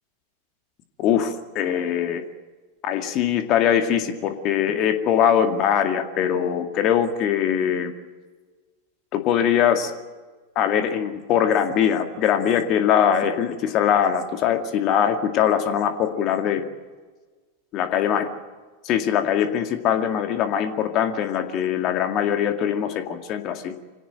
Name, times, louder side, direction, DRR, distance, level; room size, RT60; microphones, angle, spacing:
voice 1, 1.0-2.2 2.8-7.9 9.1-9.9 10.6-16.6 17.7-18.3 18.8-23.7, left 9 dB, 35° left, 7 dB, 2.1 m, -22 dB
25.5 x 17.5 x 9.0 m, 1.4 s
figure-of-eight pair, 90°, 0 cm